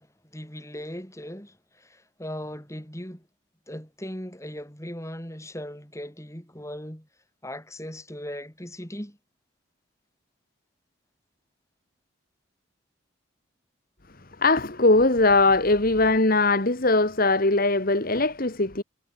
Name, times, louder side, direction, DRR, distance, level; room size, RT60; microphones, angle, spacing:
voice 1, 0.0-3.2 3.7-7.1 7.4-9.2, equal, 15° left, 5.6 m, -38 dB
voice 2, 14.4-18.8, left 2 dB, 45° left, 1.8 m, -20 dB
head